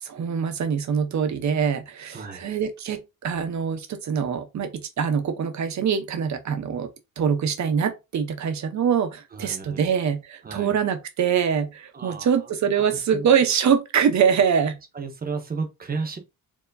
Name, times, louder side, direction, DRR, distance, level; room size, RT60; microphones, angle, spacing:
voice 1, 0.0-6.9 7.2-14.8, right 7 dB, 55° right, 0.8 m, -24 dB
voice 2, 2.1-2.5 9.3-9.9 10.4-10.8 11.9-12.5 12.9-13.2 14.9-16.2, right 4 dB, 25° right, 0.9 m, -33 dB
4.6 x 2.8 x 2.6 m
cardioid pair, 140°, 34 cm